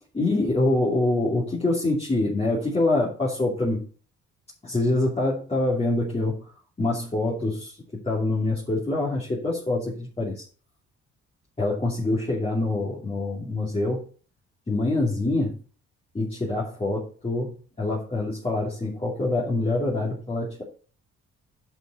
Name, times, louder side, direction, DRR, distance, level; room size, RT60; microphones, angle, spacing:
voice 1, 0.1-3.8 4.6-6.4 6.8-10.4 11.6-14.0 14.7-15.5 16.1-20.6, left 2 dB, 20° left, -5 dB, 2.8 m, -25 dB
8.1 x 5.6 x 5.6 m, 0.39 s
cardioid pair, 90°, 30 cm